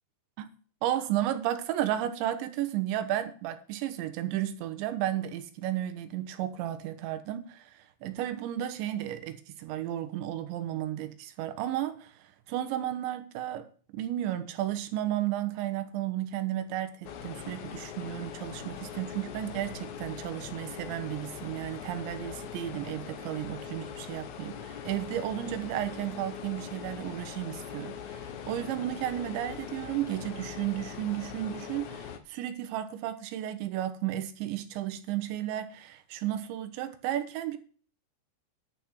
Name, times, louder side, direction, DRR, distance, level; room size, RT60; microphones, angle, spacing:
voice 1, 0.8-13.7 13.9-37.6, right 12 dB, 90° right, 3.5 m, -33 dB
sound 1, 17.0-32.2, left 8 dB, 80° left, 1.7 m, -41 dB
11.0 x 5.9 x 8.1 m
omnidirectional pair, 5.1 m